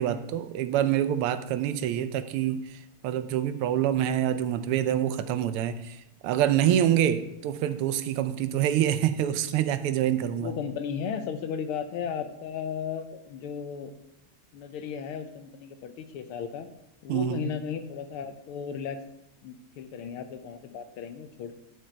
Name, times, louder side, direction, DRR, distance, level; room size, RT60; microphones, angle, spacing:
voice 1, 0.0-10.5 17.1-17.5, right 11 dB, 90° right, 11 dB, 1.6 m, -26 dB
voice 2, 10.3-13.9 14.5-16.7 17.0-19.0 19.4-21.5, left 7 dB, 80° left, 9 dB, 1.6 m, -35 dB
11.5 x 5.2 x 4.4 m, 0.85 s
omnidirectional pair, 2.4 m